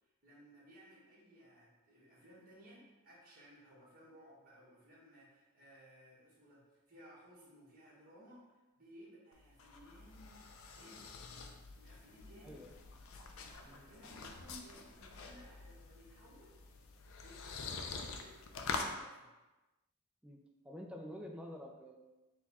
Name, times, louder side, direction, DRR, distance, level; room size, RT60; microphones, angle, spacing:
voice 1, 0.0-11.1 11.7-12.6 13.3-16.6 17.2-19.3, equal, 40° right, -8 dB, 1.5 m, -60 dB
sound 1, 9.3-18.9, left 4 dB, 65° left, 0.4 m, -46 dB
voice 2, 20.2-22.0, equal, 5° right, 0 dB, 0.4 m, -49 dB
4.4 x 2.3 x 4.1 m, 1.1 s
head